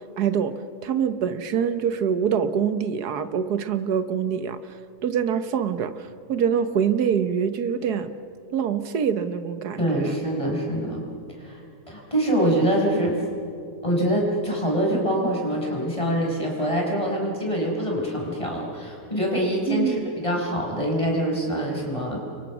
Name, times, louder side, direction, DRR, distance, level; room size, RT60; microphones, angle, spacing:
voice 1, 0.2-0.5 0.8-4.6 5.0-5.9 6.3-8.1 8.5-10.1 19.7-20.0, right 7 dB, 90° right, 11 dB, 1.6 m, -24 dB
voice 2, 9.8-11.0 11.4-11.6 11.9-13.2 13.8-22.2, equal, 20° left, -1 dB, 5.3 m, -25 dB
29.5 x 23.5 x 6.2 m, 2.5 s
omnidirectional pair, 1.6 m